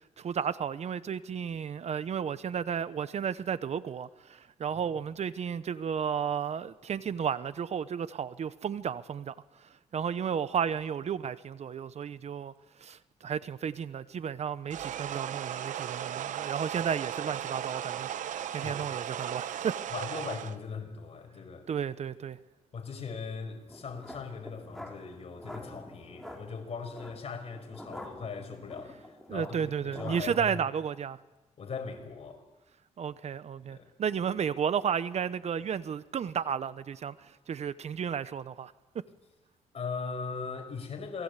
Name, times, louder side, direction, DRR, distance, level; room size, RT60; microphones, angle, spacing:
voice 1, 0.2-12.5 12.8-18.1 18.5-19.8 21.7-22.4 29.3-31.2 33.0-38.7, right 7 dB, 60° right, 1.0 m, -33 dB
sound 1, 14.7-20.6, right 10 dB, 80° right, 0.9 m, -36 dB
voice 2, 18.5-18.9 19.9-21.7 22.7-30.6 31.6-32.4 33.7-33.9 39.7-41.2, left 5 dB, 50° left, 5.8 m, -39 dB
sound 2, 23.7-30.4, left 1 dB, 5° left, 5.1 m, -47 dB
27.5 x 21.0 x 8.3 m
cardioid pair, 85°, 13 cm